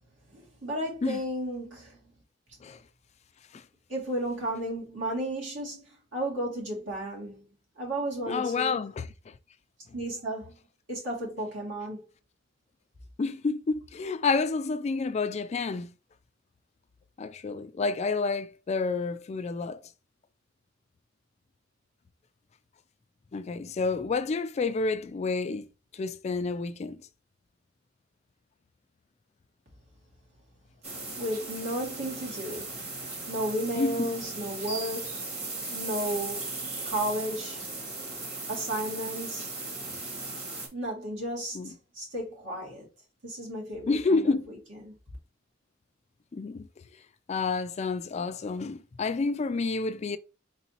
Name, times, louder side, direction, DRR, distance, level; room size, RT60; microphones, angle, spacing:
voice 1, 0.3-2.1 3.9-5.8 6.1-7.4 7.8-8.8 9.9-10.6 10.9-12.0 31.2-32.8 33.3-35.1 35.7-36.5 36.9-37.6 38.5-39.6 40.7-42.9 43.2-44.6 44.8-44.9, right 1 dB, 70° right, 2.4 m, -33 dB
voice 2, 8.3-9.0 13.2-15.9 17.2-19.8 23.3-25.7 25.9-27.0 33.8-34.1 41.5-41.7 43.9-44.5 46.3-46.7 47.3-50.2, left 4 dB, 35° left, 0.3 m, -29 dB
sound 1, 30.8-40.7, right 3 dB, 35° right, 1.7 m, -37 dB
4.5 x 4.0 x 2.9 m
head